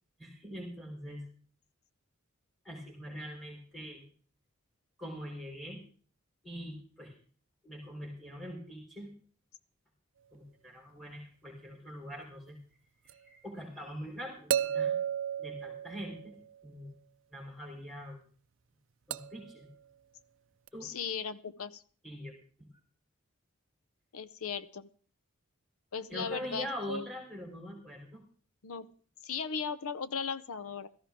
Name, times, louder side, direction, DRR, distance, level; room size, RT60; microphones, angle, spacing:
voice 1, 0.2-1.2 2.6-4.0 5.0-5.8 6.4-7.1 7.6-9.1 10.3-12.6 13.0-14.9 15.4-16.4 16.6-16.9 17.3-18.2 19.1-19.7 20.7-20.9 22.0-22.7 26.1-28.2, equal, ahead, 0 dB, 3.8 m, -43 dB
sound 1, 13.1-13.2 14.5-16.6 19.1-19.6 20.7-20.8, right 9 dB, 60° right, 0.5 m, -33 dB
voice 2, 20.8-21.8 24.1-24.9 25.9-27.1 28.6-28.9 29.2-30.9, left 6 dB, 80° left, 15 dB, 0.7 m, -37 dB
16.0 x 14.0 x 3.6 m, 0.43 s
head